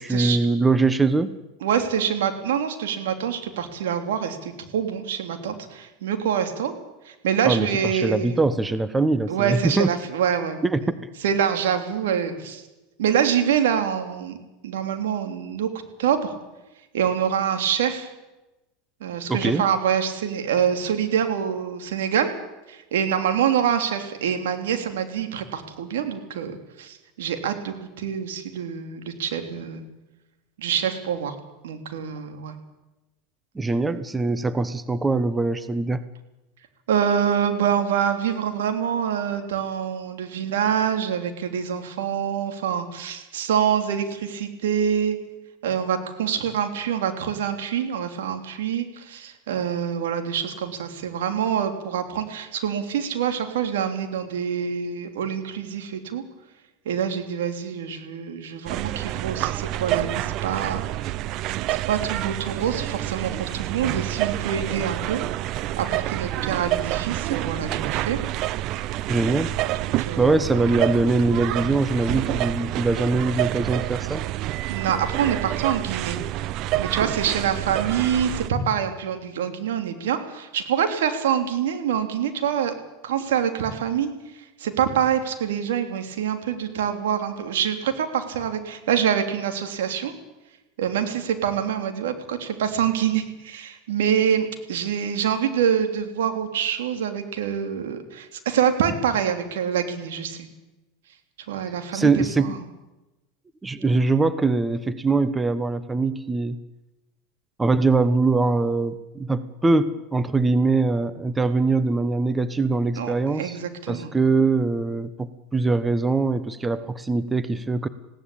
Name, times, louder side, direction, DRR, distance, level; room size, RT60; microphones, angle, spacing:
voice 1, 0.0-1.4 7.4-9.9 10.6-11.0 19.3-19.6 33.5-36.0 69.1-69.5 70.2-74.3 101.9-102.5 103.6-106.6 107.6-113.6 113.9-117.9, right 3 dB, 15° right, 13 dB, 1.2 m, -22 dB
voice 2, 1.6-6.7 7.0-8.4 9.3-10.6 11.2-12.6 13.0-14.4 14.6-15.7 16.0-16.3 16.9-18.1 19.0-22.3 22.7-29.8 30.6-31.3 31.6-32.5 36.9-45.2 45.6-56.2 56.8-60.8 61.8-65.2 65.8-68.2 69.7-70.4 74.7-76.2 76.8-82.7 83.0-90.1 90.8-100.5 101.5-102.6 112.9-114.1, right 8 dB, 80° right, 6 dB, 3.3 m, -25 dB
sound 1, 58.7-78.5, right 15 dB, 55° right, 0.6 m, -28 dB
19.5 x 17.0 x 8.7 m, 1.0 s
hypercardioid pair, 100°, 0 cm